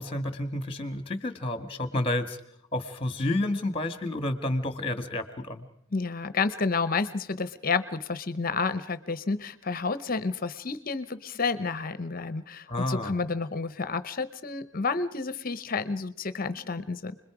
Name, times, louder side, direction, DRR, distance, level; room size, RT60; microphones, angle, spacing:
voice 1, 0.0-2.4 2.7-5.6 12.7-13.1, left 1 dB, 25° left, 10 dB, 1.6 m, -30 dB
voice 2, 5.9-17.1, left 4 dB, 45° left, 13 dB, 0.8 m, -30 dB
29.5 x 21.5 x 4.9 m, 0.69 s
head